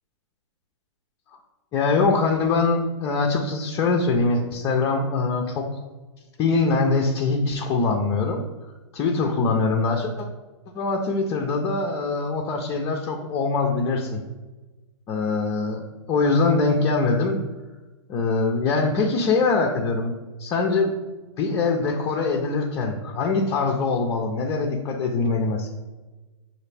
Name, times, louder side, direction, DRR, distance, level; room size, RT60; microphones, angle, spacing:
voice 1, 1.7-5.8 6.4-8.4 8.9-10.3 10.7-14.2 15.1-15.8 16.1-17.4 18.1-20.1 20.4-20.9 21.4-25.7, left 3 dB, 20° left, 0 dB, 0.4 m, -23 dB
5.8 x 2.5 x 3.2 m, 1.2 s
hypercardioid pair, 145°, 16 cm